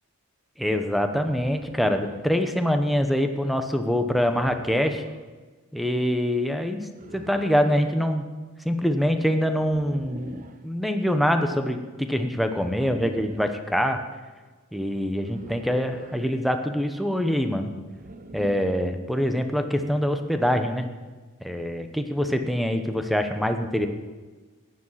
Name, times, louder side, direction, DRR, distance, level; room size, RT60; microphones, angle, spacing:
voice 1, 0.6-5.0 5.7-6.8 7.1-8.2 8.6-14.0 14.7-17.7 18.3-20.9 21.4-23.9, equal, ahead, 6 dB, 1.0 m, -24 dB
sound 1, 1.3-2.3 4.2-5.2 7.0-8.0 9.6-10.6 12.6-13.6 15.2-16.3 17.9-18.9, right 3 dB, 40° right, 0.8 m, -42 dB
14.5 x 10.0 x 5.8 m, 1.3 s
head